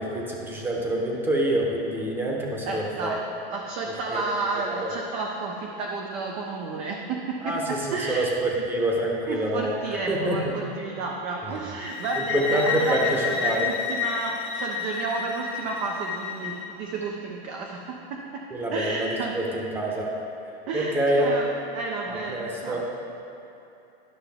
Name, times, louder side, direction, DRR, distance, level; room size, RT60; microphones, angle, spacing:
voice 1, 0.0-3.1 4.1-4.2 4.8-4.9 7.4-9.8 10.1-10.4 12.3-13.7 18.5-19.1 19.3-20.1 20.7-21.3 22.3-22.8, right 1 dB, 5° right, -2 dB, 0.8 m, -26 dB
voice 2, 2.7-8.3 9.3-19.6 20.7-22.9, right 3 dB, 25° right, 0 dB, 0.4 m, -32 dB
sound 1, 11.8-16.7, left 7 dB, 85° left, 1.2 m, -31 dB
11.5 x 5.6 x 3.4 m, 2.8 s
supercardioid pair, 155°, 31 cm